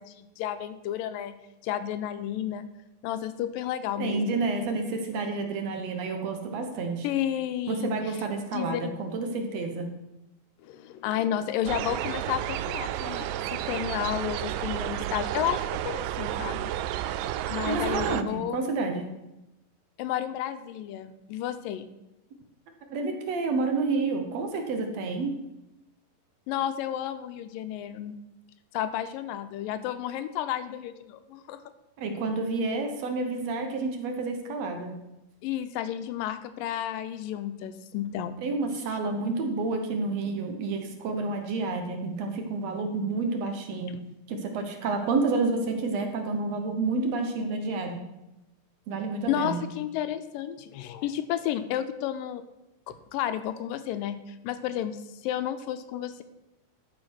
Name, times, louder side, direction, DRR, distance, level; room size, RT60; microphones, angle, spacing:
voice 1, 0.0-1.4 1.6-2.7 3.0-4.4 7.0-7.9 8.5-8.9 10.6-16.7 17.5-18.6 20.0-21.9 26.5-28.2 28.7-31.6 35.4-38.4 49.3-52.4 52.9-56.2, left 11 dB, 80° left, 10 dB, 2.2 m, -32 dB
voice 2, 4.0-7.1 7.7-9.9 17.7-19.1 22.9-25.3 32.0-35.0 38.4-44.0 44.3-48.0 48.9-49.6, right 3 dB, 65° right, 5 dB, 1.8 m, -29 dB
sound 1, 11.7-18.2, right 12 dB, 80° right, 2.0 m, -31 dB
12.5 x 5.2 x 6.2 m, 0.93 s
omnidirectional pair, 4.2 m